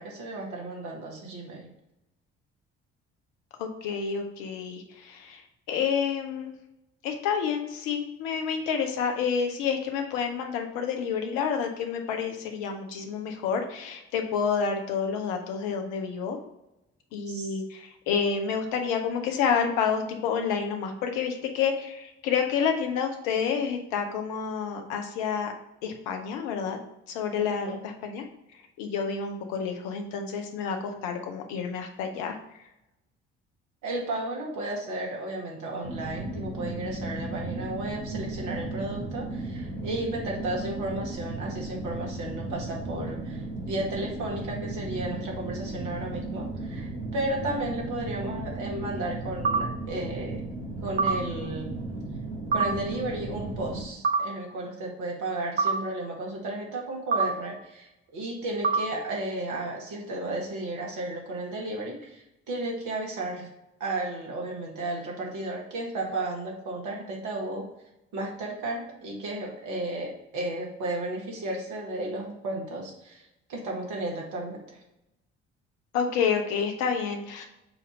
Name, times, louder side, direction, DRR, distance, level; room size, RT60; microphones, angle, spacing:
voice 1, 0.0-1.7 17.3-17.6 27.4-27.8 33.8-50.4 50.8-51.8 52.5-63.5 63.8-67.7 68.1-74.8, right 2 dB, 65° right, -1 dB, 1.8 m, -34 dB
voice 2, 3.6-5.4 5.7-6.5 7.0-16.4 17.1-25.5 25.8-26.8 27.1-28.2 28.8-32.4 75.9-77.5, left 6 dB, 75° left, 4 dB, 1.0 m, -29 dB
sound 1, 35.8-53.8, right 2 dB, 85° right, 1.7 m, -35 dB
sound 2, 49.4-49.6 51.0-51.2 52.5-52.7 54.0-54.2 55.6-55.8 57.1-57.3 58.6-58.8, right 4 dB, 30° right, 0.6 m, -23 dB
6.8 x 2.8 x 5.0 m, 0.88 s
hypercardioid pair, 50°, 33 cm